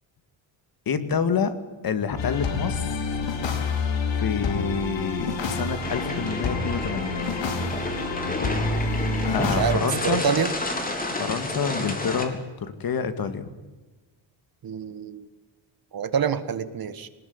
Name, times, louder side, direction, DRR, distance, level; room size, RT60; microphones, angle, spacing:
voice 1, 0.9-1.5 1.8-3.2 4.2-7.2 9.2-10.3 11.2-13.5, left 6 dB, 50° left, 10 dB, 2.1 m, -28 dB
sound 1, 2.2-9.8, left 3 dB, 70° left, 4.3 m, -28 dB
sound 2, 5.8-12.3, left 2 dB, 20° left, 3.7 m, -30 dB
voice 2, 9.3-10.5 14.6-15.3 15.9-17.1, right 7 dB, 50° right, 12 dB, 1.7 m, -27 dB
23.5 x 20.0 x 9.6 m, 1.2 s
cardioid pair, 150°, 46 cm